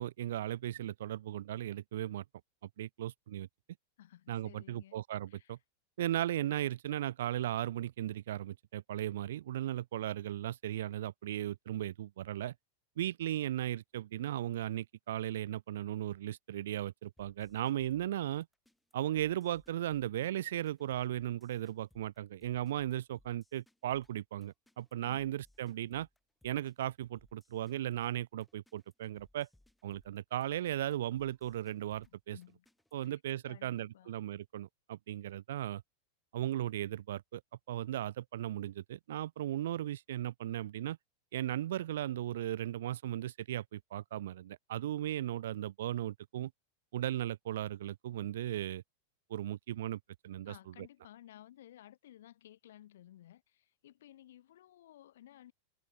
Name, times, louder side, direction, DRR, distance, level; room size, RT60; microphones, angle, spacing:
voice 1, 0.0-2.2 2.8-3.5 4.3-5.6 6.0-12.5 13.0-18.5 18.9-26.1 26.4-29.5 29.8-32.4 32.9-35.8 36.3-37.4 37.7-41.0 41.3-46.5 46.9-48.8 49.3-50.5, right 12 dB, 60° right, 0.3 m, -36 dB
voice 2, 4.0-5.0 5.3-5.6 25.0-25.4 32.0-32.6 33.0-34.1 50.5-55.5, left 12 dB, 60° left, 1.1 m, -56 dB
sound 1, 17.2-33.2, left 1 dB, 5° left, 2.9 m, -68 dB
figure-of-eight pair, 90°, 0 cm